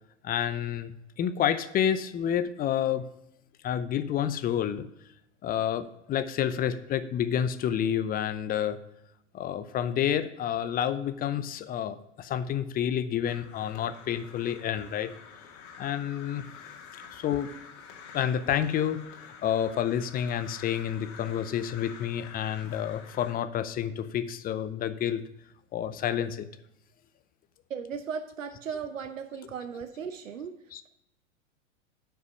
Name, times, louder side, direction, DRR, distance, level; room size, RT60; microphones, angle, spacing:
voice 1, 0.2-0.9 1.2-3.0 3.6-4.8 5.4-8.8 9.3-15.1 15.8-16.4 17.1-17.5 18.1-19.0 19.4-25.2 25.7-26.5 30.7-30.8, left 9 dB, 25° left, 12 dB, 0.6 m, -29 dB
Crow, 13.3-23.3, left 6 dB, 45° left, 2.1 m, -48 dB
voice 2, 27.7-30.5, right 6 dB, 90° right, 8 dB, 0.8 m, -36 dB
9.3 x 5.9 x 5.0 m, 0.82 s
hypercardioid pair, 105°, 38 cm